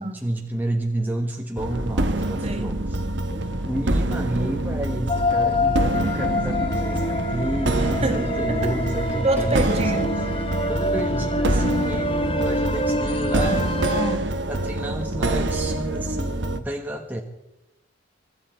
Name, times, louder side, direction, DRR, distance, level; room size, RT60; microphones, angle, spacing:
voice 1, 0.0-3.0 3.7-10.3 10.7-13.8 14.5-17.2, right 1 dB, 10° right, 1.3 m, -30 dB
sound 1, 1.6-16.6, right 1 dB, 65° right, 1.2 m, -26 dB
Subway metro underground / Alarm, 3.2-13.0, equal, 10° left, 2.1 m, -42 dB
sound 2, 5.1-14.2, left 1 dB, 25° left, 0.9 m, -26 dB
voice 2, 9.2-10.1 13.9-14.3, right 2 dB, 30° right, 1.7 m, -26 dB
24.5 x 13.0 x 4.5 m
head